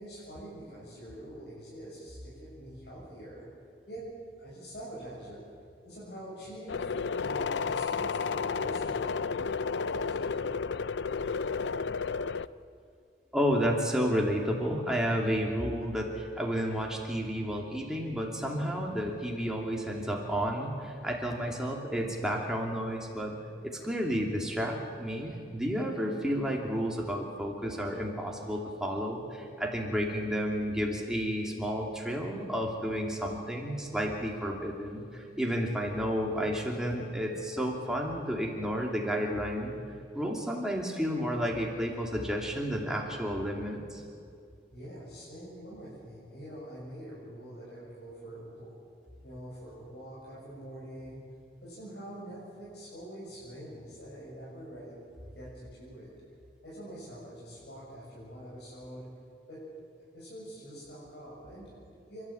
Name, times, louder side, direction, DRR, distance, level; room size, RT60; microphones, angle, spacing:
voice 1, 0.0-3.4 3.9-4.0 4.4-5.4 5.8-6.9 7.2-9.1 9.9-10.5 44.7-48.7 49.2-51.2 51.6-55.0 55.3-56.1 56.6-59.1 59.5-59.6 60.1-62.2, right 1 dB, 75° left, -8 dB, 7.4 m, -45 dB
sound 1, 6.7-12.5, left 5 dB, 90° left, 0.5 m, -32 dB
voice 2, 13.3-23.4 23.7-39.7 40.1-44.0, equal, 5° right, -1 dB, 2.9 m, -31 dB
30.0 x 13.5 x 8.8 m, 2.3 s
head